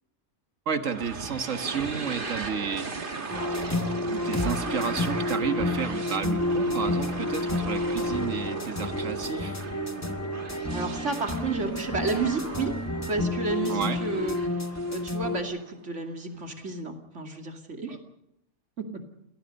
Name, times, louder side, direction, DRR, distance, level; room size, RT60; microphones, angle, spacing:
voice 1, 0.7-2.9 4.0-9.7 13.7-14.0, right 6 dB, 85° right, 8 dB, 1.8 m, -31 dB
sound 1, 0.9-15.8, right 3 dB, 45° right, 1.7 m, -38 dB
sound 2, 3.3-15.4, left 2 dB, 15° left, 1.1 m, -30 dB
sound 3, 4.3-14.3, right 2 dB, 25° right, 7.5 m, -41 dB
voice 2, 10.7-12.7 13.1-14.4 14.9-18.0 18.8-18.9, right 3 dB, 70° right, 4 dB, 2.7 m, -31 dB
29.0 x 17.5 x 5.4 m, 0.77 s
omnidirectional pair, 1.3 m